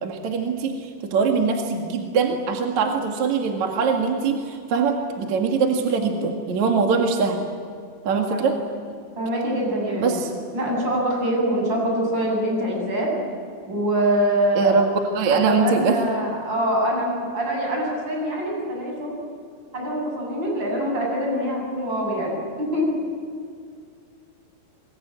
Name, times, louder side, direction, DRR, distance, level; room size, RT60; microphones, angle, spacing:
voice 1, 0.0-7.5 8.0-8.6 10.0-10.3 14.6-14.9 15.1-16.0, right 5 dB, 50° right, 2 dB, 2.5 m, -22 dB
voice 2, 9.2-10.2 10.5-13.1 13.7-14.8 15.3-19.2 19.7-22.9, right 1 dB, 25° right, -1 dB, 8.6 m, -24 dB
28.0 x 23.0 x 8.8 m, 2.2 s
omnidirectional pair, 5.3 m